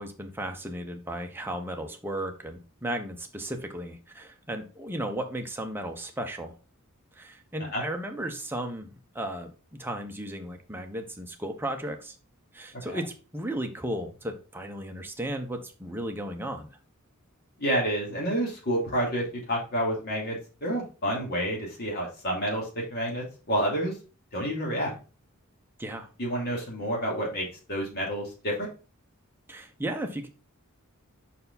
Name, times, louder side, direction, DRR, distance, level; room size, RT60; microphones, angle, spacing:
voice 1, 0.0-6.5 7.2-8.9 9.1-9.5 9.8-12.2 12.5-16.8 25.8-26.1 29.5-30.3, right 1 dB, 10° right, 4 dB, 0.9 m, -35 dB
voice 2, 17.6-23.9 24.3-24.9 26.2-28.7, equal, 50° left, -2 dB, 2.7 m, -29 dB
5.5 x 4.7 x 4.0 m, 0.34 s
head